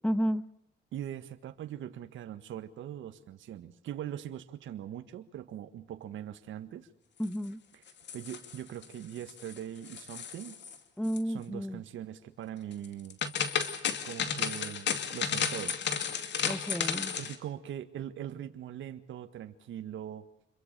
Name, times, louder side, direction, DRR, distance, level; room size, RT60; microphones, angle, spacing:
voice 1, 0.0-0.4 7.2-7.6 11.0-11.8 16.4-17.2, equal, 5° left, 14 dB, 1.2 m, -32 dB
voice 2, 0.9-6.9 7.7-7.8 8.1-10.6 11.3-13.2 14.0-15.7 17.2-20.2, right 10 dB, 75° right, 8 dB, 1.7 m, -41 dB
sound 1, 7.9-8.8 9.2-9.6 9.8-10.8 11.0-11.2 12.8-17.4, left 7 dB, 65° left, 2.5 m, -33 dB
27.0 x 23.0 x 6.8 m, 0.80 s
cardioid pair, 90°, 20 cm